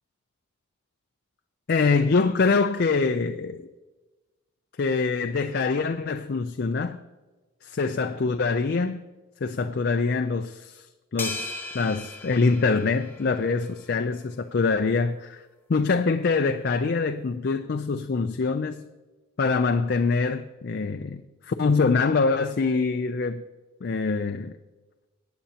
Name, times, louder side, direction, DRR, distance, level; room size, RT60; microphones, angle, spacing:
voice 1, 1.7-3.7 4.8-7.0 7.6-9.0 9.4-10.9 11.1-11.5 11.7-15.4 15.7-18.9 19.4-23.4 23.8-24.5, left 4 dB, 50° left, 0.4 m, -24 dB
sound 1, 11.2-13.7, left 2 dB, 10° left, 0.9 m, -37 dB
17.5 x 9.1 x 2.8 m
head